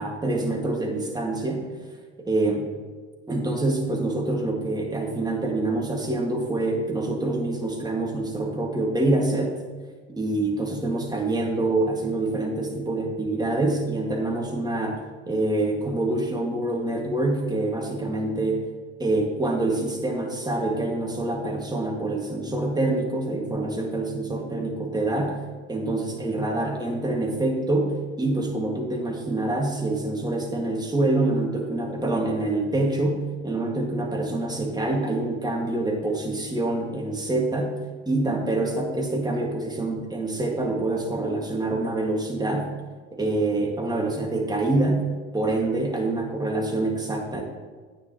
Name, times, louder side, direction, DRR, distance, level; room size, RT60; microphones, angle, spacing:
voice 1, 0.0-1.7 2.2-2.7 3.3-9.6 10.1-18.7 19.0-25.4 25.7-37.8 38.1-42.7 43.1-45.0 45.3-47.4, right 2 dB, 10° right, 1 dB, 1.9 m, -26 dB
9.8 x 9.1 x 3.0 m, 1.5 s
figure-of-eight pair, 65°, 37 cm